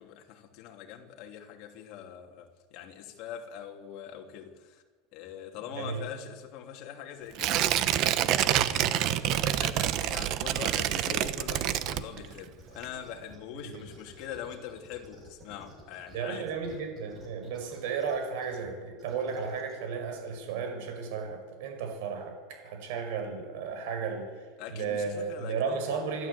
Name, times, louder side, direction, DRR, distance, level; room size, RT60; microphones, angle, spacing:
voice 1, 0.0-4.8 5.1-7.6 8.2-16.5 24.6-25.8, left 9 dB, 45° left, 3.1 m, -43 dB
Tearing, 7.4-12.5 12.8-12.9, right 12 dB, 40° right, 0.9 m, -27 dB
voice 2, 8.4-8.7 13.6-13.8 16.1-24.3 24.7-26.3, right 5 dB, 65° right, 6.0 m, -34 dB
sound 1, 11.6-12.3 12.6-16.2 16.5-18.6 19.0-19.8, right 1 dB, 20° right, 5.9 m, -52 dB
27.5 x 12.5 x 8.5 m
supercardioid pair, 165°, 0 cm